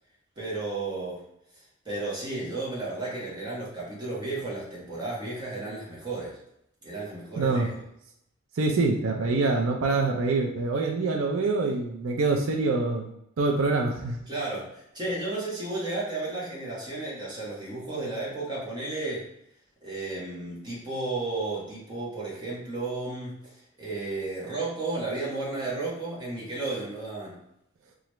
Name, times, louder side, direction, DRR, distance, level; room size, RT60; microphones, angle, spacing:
voice 1, 0.4-1.2 1.8-6.4 6.8-7.7 14.3-19.3 19.8-23.4 23.8-27.4, right 2 dB, 20° right, -7 dB, 1.1 m, -33 dB
voice 2, 7.4-7.7 8.6-13.1 13.4-14.2, right 3 dB, 80° right, 2 dB, 0.4 m, -25 dB
3.0 x 2.4 x 3.0 m, 0.78 s
head